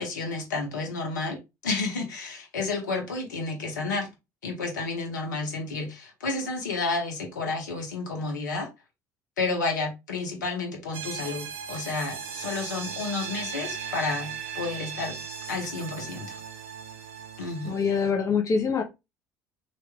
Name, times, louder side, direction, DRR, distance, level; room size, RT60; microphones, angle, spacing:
voice 1, 0.0-4.1 4.4-8.7 9.4-15.2 15.5-16.4 17.4-17.8, left 3 dB, 80° left, 1.0 m, -31 dB
sound 1, 10.9-18.1, right 7 dB, 65° right, 0.7 m, -37 dB
voice 2, 17.6-18.8, left 5 dB, 35° left, 1.0 m, -24 dB
3.0 x 2.5 x 3.3 m
figure-of-eight pair, 60°, 10 cm